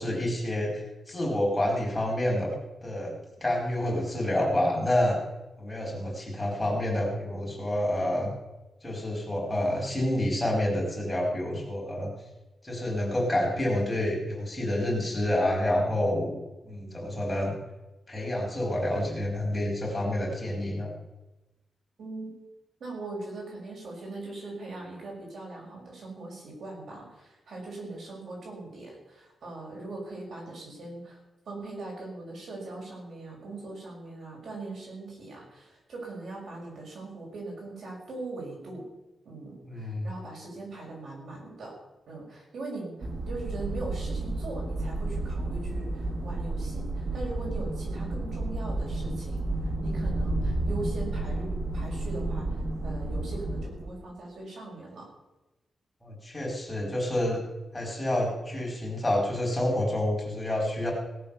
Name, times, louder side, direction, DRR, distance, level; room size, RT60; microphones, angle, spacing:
voice 1, 0.0-2.5 2.8-5.2 5.6-8.3 8.8-12.1 12.6-17.5 18.1-20.9 39.6-40.1 56.0-57.4 57.7-60.9, left 1 dB, 15° left, -2 dB, 4.6 m, -28 dB
voice 2, 22.0-22.3 22.8-31.2 31.5-38.8 39.2-41.7 42.1-55.1, right 2 dB, 75° right, -2 dB, 6.3 m, -40 dB
sound 1, 43.0-53.9, right 2 dB, 55° right, 1.7 m, -31 dB
17.5 x 7.8 x 7.1 m, 1.0 s
wide cardioid pair, 125°, 0 cm